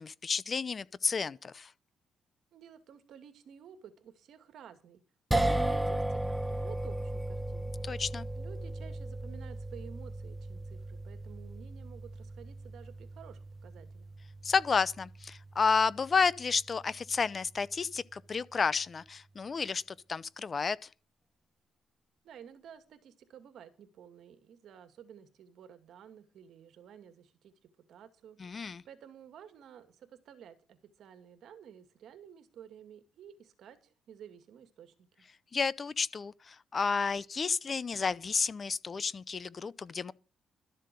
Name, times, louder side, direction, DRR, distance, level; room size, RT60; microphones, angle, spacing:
voice 1, 0.0-1.7 7.9-8.3 14.4-19.8 20.1-20.8 28.4-28.8 35.5-40.1, left 5 dB, 40° left, 0.6 m, -31 dB
voice 2, 2.5-5.0 5.4-7.8 8.4-14.1 22.2-27.5 27.9-28.4 28.8-35.3, right 8 dB, 70° right, 2.2 m, -53 dB
sound 1, 5.3-17.6, right 1 dB, 5° right, 1.2 m, -36 dB
13.0 x 7.5 x 6.9 m
cardioid pair, 90°, 0 cm